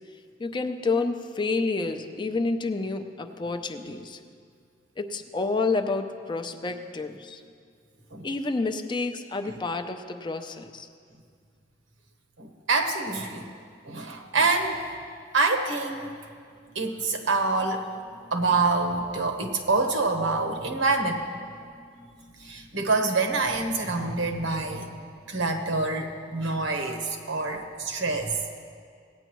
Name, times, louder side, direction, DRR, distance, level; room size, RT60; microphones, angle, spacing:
voice 1, 0.4-4.2 5.0-7.4 8.2-10.9, left 3 dB, 25° left, 6 dB, 0.5 m, -29 dB
voice 2, 12.4-13.5 13.8-14.8 15.3-16.2 16.7-17.8 18.3-21.2 22.4-24.9 25.3-28.3, right 3 dB, 80° right, 4 dB, 1.1 m, -26 dB
18.0 x 9.0 x 3.0 m, 2.2 s
head